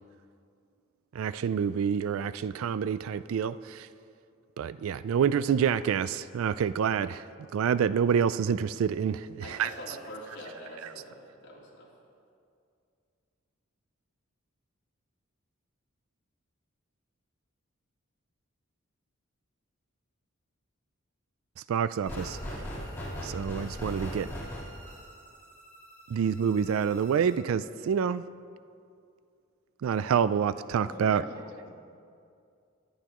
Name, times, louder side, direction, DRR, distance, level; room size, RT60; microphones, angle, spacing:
voice 1, 1.1-3.9 4.6-7.2 7.5-9.7 21.7-22.4 23.2-24.3 26.1-28.2 29.8-31.2, right 7 dB, 70° right, 15 dB, 0.3 m, -27 dB
voice 2, 9.4-11.9, equal, 55° left, -5 dB, 3.2 m, -44 dB
sound 1, 22.0-27.4, equal, 10° left, 3.6 m, -40 dB
voice 3, 30.8-31.7, equal, 25° right, -7 dB, 4.0 m, -44 dB
23.5 x 11.0 x 3.0 m, 2.4 s
head